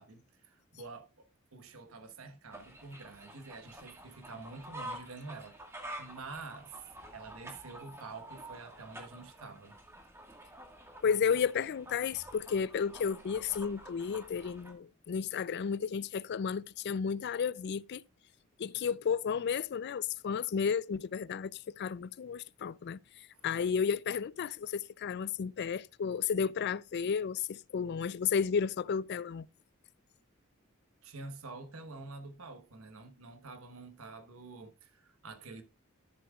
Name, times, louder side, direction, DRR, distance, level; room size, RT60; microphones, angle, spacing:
voice 1, 0.0-5.7 6.0-6.7 7.1-9.8 23.3-23.5 31.0-35.6, right 3 dB, 85° right, 1.2 m, -48 dB
sound 1, 2.5-14.7, right 1 dB, 15° right, 1.7 m, -49 dB
voice 2, 11.0-18.0 18.6-23.0 23.4-29.5, left 6 dB, 50° left, 0.4 m, -32 dB
12.5 x 7.3 x 2.4 m
head